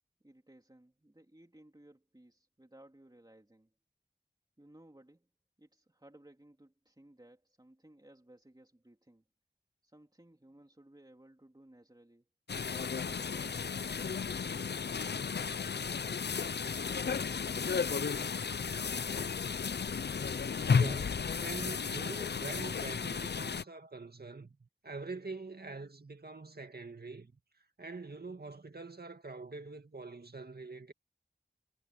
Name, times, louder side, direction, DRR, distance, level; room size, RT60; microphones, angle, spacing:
voice 1, 0.2-3.7 4.6-5.3 5.6-9.2 9.8-12.3 12.7-14.0, right 1 dB, 25° right, 3.1 m, -59 dB
sound 1, 12.5-23.6, left 6 dB, 70° left, 0.5 m, -34 dB
voice 2, 20.7-27.3 27.8-30.9, right 3 dB, 65° right, 2.1 m, -45 dB
wide cardioid pair, 50°, 18 cm